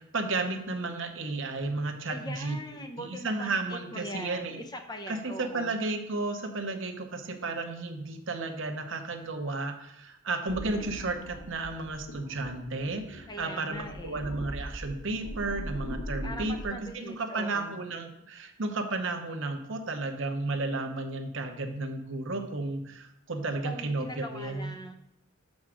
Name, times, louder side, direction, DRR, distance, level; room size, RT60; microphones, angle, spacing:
voice 1, 0.0-2.6 3.0-4.6 5.1-24.7, right 3 dB, 65° right, 5 dB, 0.9 m, -33 dB
voice 2, 2.1-5.8 13.3-14.3 16.2-17.8 23.6-24.9, equal, 20° left, 5 dB, 0.6 m, -41 dB
sound 1, 10.5-16.6, equal, 65° left, 1.1 m, -40 dB
6.3 x 4.7 x 6.2 m, 0.82 s
head